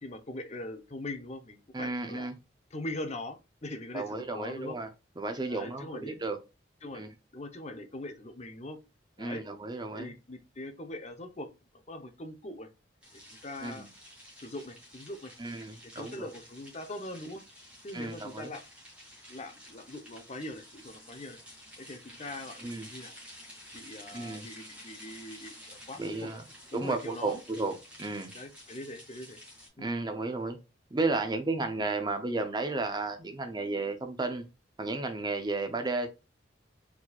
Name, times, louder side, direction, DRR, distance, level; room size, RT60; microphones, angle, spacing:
voice 1, 0.0-2.3 2.7-4.8 5.5-6.2 6.8-7.1 7.3-8.8 9.2-9.4 9.9-11.5 11.9-12.7 13.1-13.9 14.4-15.3 15.9-17.4 17.8-18.6 19.3-21.4 21.8-23.2 23.7-26.4 26.7-27.4 28.3-29.4 29.8-29.9, left 1 dB, 35° left, 0.8 m, -42 dB
voice 2, 1.7-2.3 3.9-4.9 5.2-6.4 6.9-7.1 9.2-10.1 13.6-13.9 15.4-16.3 17.9-18.5 22.6-22.9 24.1-24.5 26.0-26.4 26.7-27.7 28.0-28.3 29.8-30.6 30.9-34.5 34.8-36.1, right 3 dB, 20° right, 0.6 m, -33 dB
sound 1, 13.0-29.7, equal, 5° right, 2.0 m, -51 dB
4.6 x 4.1 x 2.3 m
head